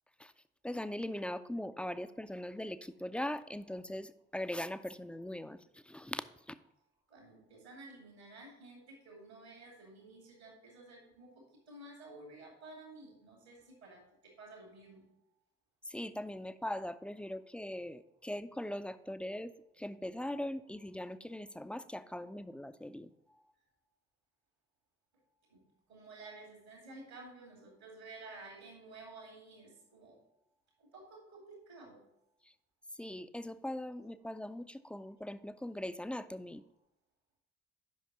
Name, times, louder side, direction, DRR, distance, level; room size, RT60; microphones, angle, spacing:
voice 1, 0.6-6.6 15.9-23.4 32.4-32.5 32.9-36.6, left 1 dB, 5° left, 12 dB, 0.3 m, -41 dB
voice 2, 7.1-11.3 11.7-15.0 25.5-25.6 25.9-30.1 30.9-32.0, right 2 dB, 85° right, 0 dB, 2.2 m, -52 dB
8.4 x 5.7 x 4.4 m, 0.82 s
figure-of-eight pair, 40°, 32 cm